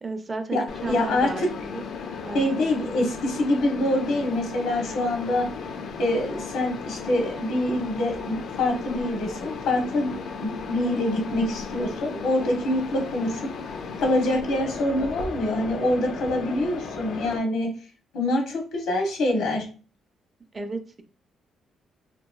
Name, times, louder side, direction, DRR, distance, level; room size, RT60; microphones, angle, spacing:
voice 1, 0.0-1.9 2.2-2.6 20.5-21.0, right 3 dB, 30° right, 8 dB, 0.4 m, -34 dB
voice 2, 0.5-1.5 2.3-5.5 6.0-10.1 10.4-17.7 18.1-19.7, left 1 dB, 85° left, 2 dB, 0.9 m, -25 dB
Mechanisms, 0.7-17.4, left 5 dB, 70° left, 0.4 m, -35 dB
2.8 x 2.6 x 2.3 m, 0.37 s
cardioid pair, 90°, 0 cm